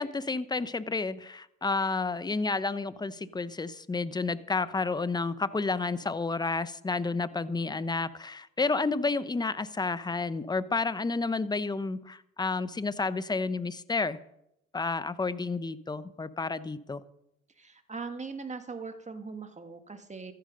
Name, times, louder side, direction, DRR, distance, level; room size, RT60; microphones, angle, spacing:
voice 1, 0.0-14.2 14.7-17.0, left 3 dB, 15° left, 15 dB, 0.8 m, -30 dB
voice 2, 17.6-20.3, right 4 dB, 20° right, 7 dB, 1.7 m, -40 dB
14.0 x 12.0 x 5.3 m, 0.79 s
supercardioid pair, 80°, 31 cm